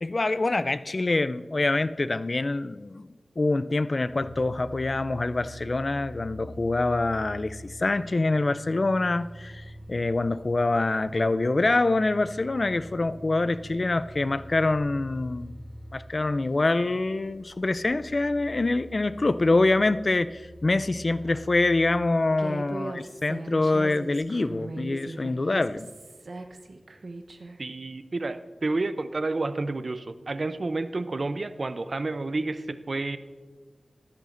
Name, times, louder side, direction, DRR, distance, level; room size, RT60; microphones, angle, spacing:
voice 1, 0.0-3.1 3.4-15.5 15.9-25.9, left 2 dB, 50° left, 14 dB, 0.3 m, -25 dB
sound 1, 4.0-22.1, equal, 5° right, 2.4 m, -47 dB
sound 2, 4.1-15.9, equal, 65° left, 1.2 m, -47 dB
Human voice, 22.4-27.6, right 2 dB, 75° right, 0.8 m, -39 dB
voice 2, 27.6-33.2, right 2 dB, 55° right, 12 dB, 0.5 m, -30 dB
14.0 x 11.0 x 2.5 m, 1.4 s
wide cardioid pair, 75°, 0 cm